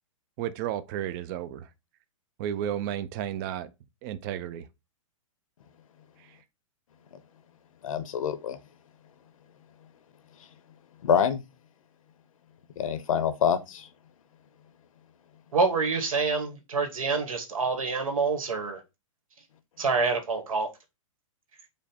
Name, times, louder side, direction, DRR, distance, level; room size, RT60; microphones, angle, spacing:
voice 1, 0.4-1.7 2.4-3.7 4.0-4.7 6.2-6.4, right 10 dB, 35° right, 0.4 m, -33 dB
voice 2, 7.8-8.6 11.0-11.4 12.8-13.9, left 7 dB, 75° left, 0.8 m, -26 dB
voice 3, 15.5-18.8 19.8-20.7, right 4 dB, 85° right, 1.4 m, -27 dB
5.0 x 2.1 x 4.2 m
hypercardioid pair, 140°, 17 cm